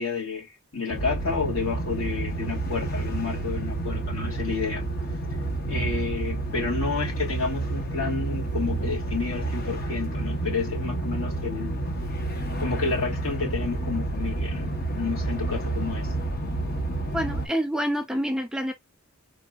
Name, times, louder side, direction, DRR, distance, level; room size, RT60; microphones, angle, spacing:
voice 1, 0.0-4.8 5.7-11.7 12.6-16.1, left 4 dB, 65° left, 2.9 m, -30 dB
sound 1, 0.9-17.5, right 2 dB, 45° left, 1.0 m, -30 dB
voice 2, 17.1-18.7, equal, 5° right, 0.5 m, -27 dB
4.2 x 3.2 x 2.3 m
head